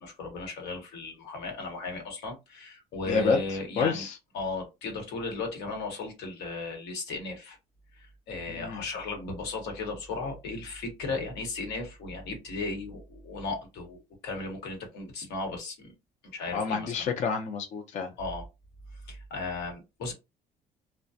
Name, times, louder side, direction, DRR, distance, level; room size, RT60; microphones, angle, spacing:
voice 1, 0.0-4.0 4.3-7.6 7.9-15.9 16.2-17.1 18.2-18.4 19.1-20.1, left 3 dB, 85° left, 1.1 m, -36 dB
voice 2, 3.1-3.4 3.8-4.1 8.6-8.8 16.5-18.1, left 5 dB, 45° left, 0.5 m, -28 dB
2.3 x 2.1 x 2.6 m
cardioid pair, 110°, 17 cm